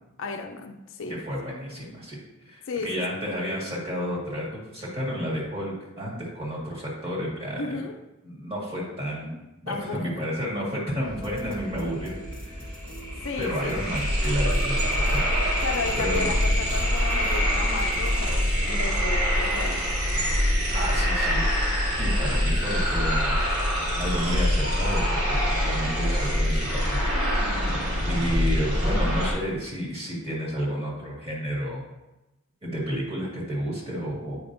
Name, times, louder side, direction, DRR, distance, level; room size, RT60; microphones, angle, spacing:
voice 1, 0.2-1.2 2.7-3.2 7.6-8.0 9.7-10.3 13.2-13.8 15.6-19.9, left 3 dB, 60° left, 0.5 m, -33 dB
voice 2, 1.3-2.2 2.5-4.5 4.7-7.8 8.2-12.1 12.4-12.8 13.4-15.2 16.0-16.3 20.7-21.4 22.0-23.3 24.0-27.1 28.1-31.8 32.6-34.4, equal, 25° right, 2.0 m, -31 dB
sound 1, 11.0-19.1, equal, 5° left, 1.0 m, -39 dB
sound 2, 12.3-12.4 12.6-29.3, equal, 85° right, 1.9 m, -24 dB
sound 3, 12.7-14.1 14.5-15.9, right 7 dB, 65° right, 0.3 m, -38 dB
8.4 x 5.1 x 2.6 m
head